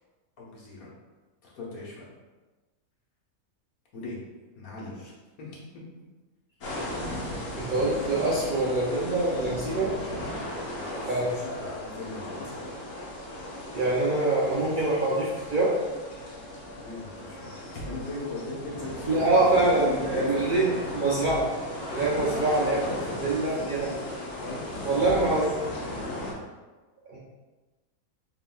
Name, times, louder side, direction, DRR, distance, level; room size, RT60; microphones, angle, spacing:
voice 1, 0.4-0.9 1.4-2.1 3.9-4.2 4.6-5.1 5.4-5.8 9.4-12.9 16.8-19.2 19.7-20.3 20.7-20.8 22.0-23.7 24.4-25.3 25.9-26.2, left 2 dB, 85° left, -5 dB, 1.5 m, -39 dB
sound 1, 6.6-26.3, left 1 dB, 70° left, 1.3 m, -36 dB
voice 2, 7.6-9.9 11.1-11.3 13.7-15.8 19.1-21.5 21.9-24.0 24.8-25.5 27.1-27.2, right 2 dB, 55° right, -6 dB, 0.5 m, -25 dB
4.2 x 3.9 x 2.2 m, 1.2 s
omnidirectional pair, 1.5 m